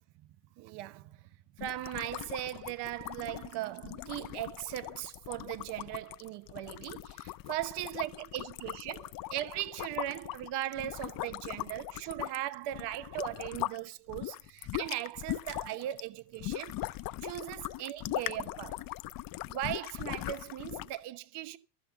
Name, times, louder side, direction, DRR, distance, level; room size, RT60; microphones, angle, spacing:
voice 1, 0.6-1.2 1.6-16.7 17.2-18.9 19.5-21.6, right 14 dB, 60° right, 1.0 m, -38 dB
sound 1, 1.6-13.8 14.1-21.0, left 16 dB, 50° left, 0.7 m, -40 dB
13.0 x 7.3 x 6.9 m
supercardioid pair, 110°, 46 cm